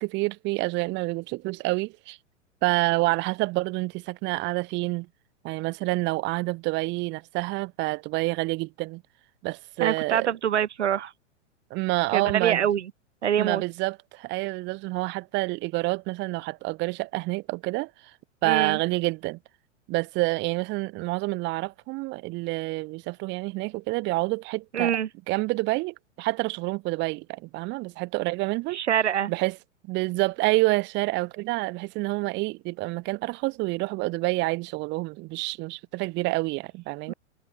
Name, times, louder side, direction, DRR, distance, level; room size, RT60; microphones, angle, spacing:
voice 1, 0.0-2.2 2.6-5.1 5.4-9.0 9.4-10.3 11.7-12.6 13.4-17.9 18.4-19.4 19.9-24.9 25.3-28.8 29.3-29.5 29.9-37.1, right 23 dB, 30° right, 1.6 m, -28 dB
voice 2, 9.8-11.1 12.1-12.9 13.2-13.6 18.4-18.8 24.7-25.1 28.7-29.3 37.1-37.2, right 9 dB, 60° right, 1.1 m, -25 dB
figure-of-eight pair, 105°, 38 cm